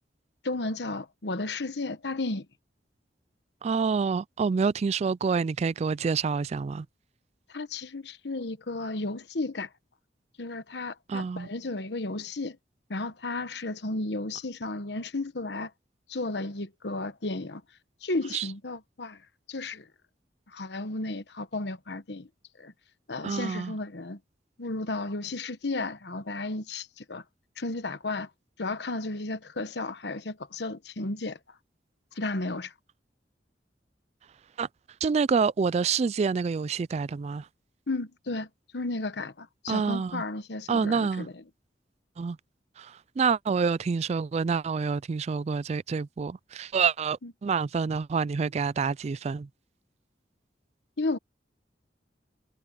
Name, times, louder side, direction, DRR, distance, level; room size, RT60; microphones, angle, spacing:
voice 1, 0.4-2.5 7.5-9.7 10.4-12.6 12.9-15.7 16.1-17.6 18.0-19.2 19.5-19.9 20.5-22.3 22.6-22.7 23.1-24.2 24.6-27.2 27.6-28.3 28.6-31.4 32.1-32.7 37.9-38.5 38.7-41.4 47.2-47.3 51.0-51.2, left 2 dB, 70° left, 1.1 m, -33 dB
voice 2, 3.6-6.9 11.1-11.5 18.3-18.5 23.2-23.7 34.6-34.7 35.0-37.5 39.7-40.2 40.7-41.3 42.2-42.4 42.8-49.5, right 5 dB, 40° right, 0.3 m, -27 dB
head